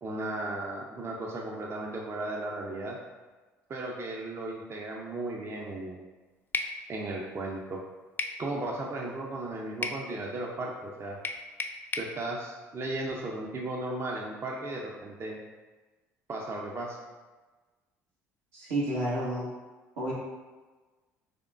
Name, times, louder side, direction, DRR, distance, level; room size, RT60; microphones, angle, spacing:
voice 1, 0.0-3.0 3.7-6.0 6.9-7.8 8.4-11.2 12.0-15.4 16.3-17.0, right 2 dB, 35° right, -1 dB, 0.5 m, -35 dB
sound 1, 6.5-6.8 8.2-8.4 9.8-10.0 11.2-12.1, left 3 dB, 25° left, 0.3 m, -33 dB
voice 2, 18.5-19.5 20.0-20.1, right 1 dB, 80° right, -7 dB, 1.2 m, -30 dB
3.6 x 3.6 x 2.4 m, 1.3 s
hypercardioid pair, 60°, 7 cm